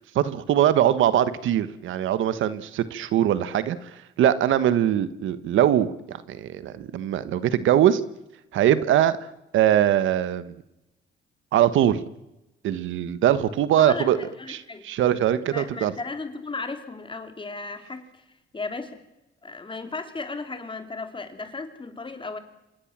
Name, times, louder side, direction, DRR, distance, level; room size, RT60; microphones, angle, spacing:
voice 1, 0.0-8.0 8.5-9.2 9.5-10.5 11.5-12.0 12.6-14.2 14.5-15.9, right 11 dB, 80° right, 14 dB, 1.4 m, -22 dB
voice 2, 13.8-14.9 15.5-18.0 18.5-19.0 19.4-22.4, left 3 dB, 25° left, 7 dB, 3.6 m, -35 dB
27.0 x 20.5 x 7.5 m, 0.93 s
cardioid pair, 90°, 20 cm